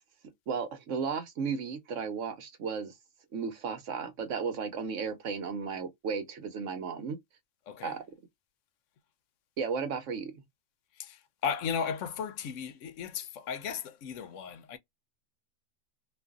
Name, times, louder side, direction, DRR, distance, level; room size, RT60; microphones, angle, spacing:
voice 1, 0.5-2.9 3.3-7.2 7.8-8.0 9.6-10.4, right 5 dB, 70° right, 1.2 m, -34 dB
voice 2, 11.0-14.8, left 7 dB, 75° left, 0.9 m, -35 dB
2.6 x 2.4 x 2.3 m
omnidirectional pair, 1.3 m